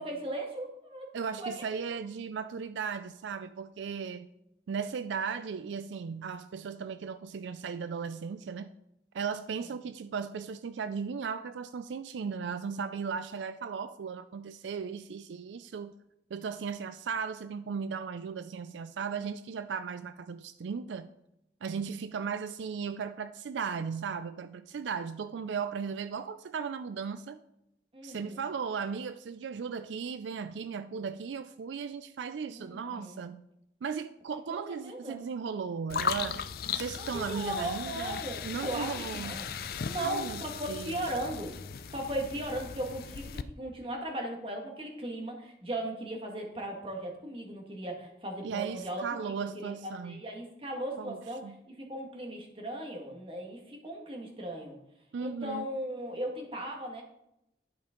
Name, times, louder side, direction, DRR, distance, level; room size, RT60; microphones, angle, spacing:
voice 1, 0.0-1.1 1.4-1.8 27.9-28.4 32.5-33.2 34.5-35.2 36.9-39.5 39.8-41.5 41.9-51.4 51.9-54.7 55.2-57.0, right 1 dB, 30° right, 1.6 m, -37 dB
voice 2, 1.1-4.3 4.7-8.7 9.1-15.9 16.3-21.1 21.6-27.4 28.0-33.4 33.8-36.4 36.7-39.3 40.0-40.4 40.7-41.0 48.4-50.2 51.0-51.2 51.4-51.6 55.1-55.7, right 6 dB, 85° right, 0.4 m, -36 dB
sound 1, 35.9-43.4, left 7 dB, 55° left, 0.4 m, -37 dB
11.5 x 5.3 x 3.7 m
head